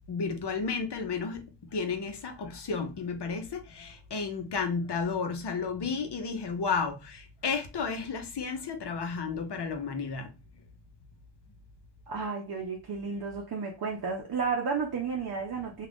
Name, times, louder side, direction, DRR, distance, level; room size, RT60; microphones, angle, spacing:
voice 1, 0.1-1.4 1.7-10.3, left 5 dB, 60° left, 0.8 m, -32 dB
voice 2, 12.1-15.9, right 5 dB, 55° right, 0.6 m, -32 dB
2.4 x 2.4 x 3.4 m
wide cardioid pair, 70°, 45 cm